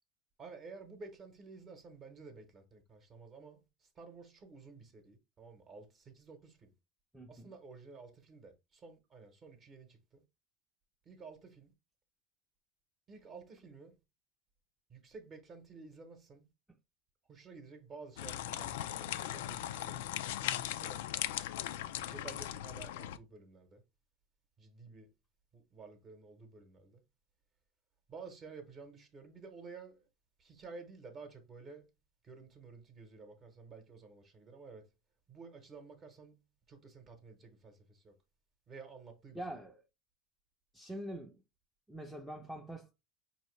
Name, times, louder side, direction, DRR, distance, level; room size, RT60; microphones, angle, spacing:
voice 1, 0.4-6.7 7.3-10.2 11.0-11.7 13.1-13.9 14.9-16.5 17.3-21.0 22.0-23.8 24.6-25.1 25.5-27.0 28.1-30.1 30.4-31.9 32.2-34.9 35.3-36.4 36.7-38.1 38.7-39.5, right 4 dB, 30° right, 0.8 m, -52 dB
voice 2, 7.1-7.5 39.3-39.8 40.7-41.4 41.9-42.9, right 1 dB, 5° right, 0.5 m, -44 dB
sound 1, 18.2-23.2, left 12 dB, 85° left, 0.3 m, -38 dB
4.5 x 2.7 x 3.1 m
supercardioid pair, 145°, 0 cm